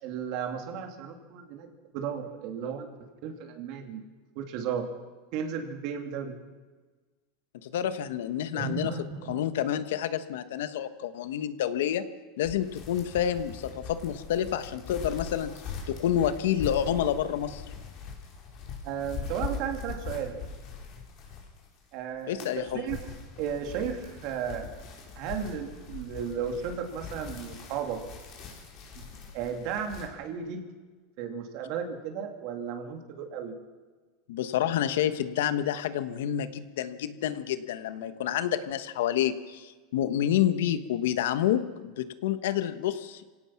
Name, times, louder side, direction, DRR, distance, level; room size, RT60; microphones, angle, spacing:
voice 1, 0.0-2.9 3.2-4.0 4.3-4.9 5.3-6.4 8.5-9.4 18.8-20.4 21.9-23.0 23.4-24.7 25.2-28.0 29.0-29.1 29.3-30.6 31.2-33.5, right 7 dB, 45° right, 4 dB, 2.7 m, -34 dB
voice 2, 7.6-8.9 9.3-12.0 12.4-15.5 15.9-17.6 22.3-22.8 34.3-43.2, left 10 dB, 80° left, 11 dB, 1.2 m, -28 dB
sound 1, 12.4-21.8 22.1-30.1, left 5 dB, 40° left, 4.4 m, -41 dB
25.0 x 17.5 x 5.9 m, 1.3 s
supercardioid pair, 165°, 0 cm